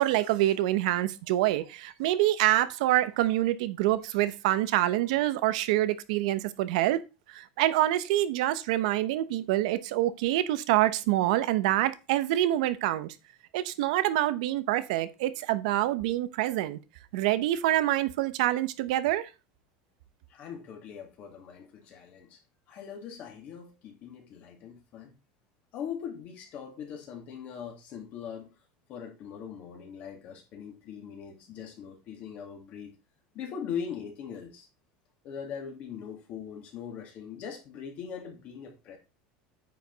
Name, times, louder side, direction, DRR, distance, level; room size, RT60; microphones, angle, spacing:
voice 1, 0.0-7.0 7.3-13.1 13.5-16.8 17.1-19.3, right 14 dB, 75° right, 0.8 m, -26 dB
voice 2, 20.3-22.4 22.7-25.1 25.7-28.5 28.9-33.0 33.3-34.7 35.2-39.0, left 7 dB, 40° left, 2.3 m, -41 dB
9.2 x 5.2 x 4.0 m
cardioid pair, 165°, 4 cm